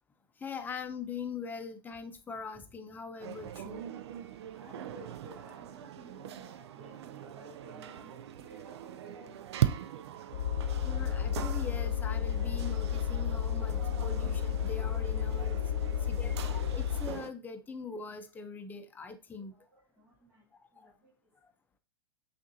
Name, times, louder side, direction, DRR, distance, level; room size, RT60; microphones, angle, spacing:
voice 1, 0.4-3.9 10.8-15.6 15.9-19.5 20.7-20.9 21.4-21.5, left 5 dB, 15° left, 0.6 m, -42 dB
sound 1, 3.2-17.3, right 11 dB, 75° right, 0.4 m, -40 dB
voice 2, 4.6-9.7 19.5-21.1, right 1 dB, 10° right, 2.0 m, -55 dB
sound 2, 10.3-17.2, left 9 dB, 85° left, 0.4 m, -32 dB
6.1 x 2.5 x 2.7 m
hypercardioid pair, 115°, 14 cm